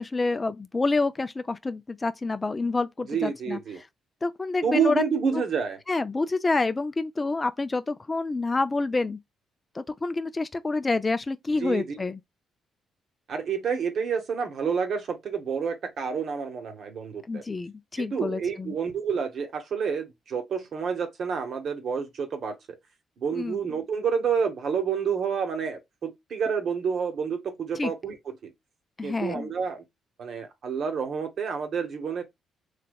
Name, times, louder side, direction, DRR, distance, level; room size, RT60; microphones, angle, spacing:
voice 1, 0.0-3.6 4.2-5.0 5.9-9.2 9.7-12.2 17.3-18.7 23.4-23.6 27.8-27.9 29.0-29.5, left 3 dB, 25° left, 0.3 m, -27 dB
voice 2, 3.1-3.8 4.6-5.8 11.6-12.0 13.3-17.4 18.0-22.8 23.2-28.5 29.0-29.8 30.2-32.2, right 6 dB, 60° right, 1.0 m, -29 dB
3.2 x 2.8 x 2.2 m
cardioid pair, 90°, 0 cm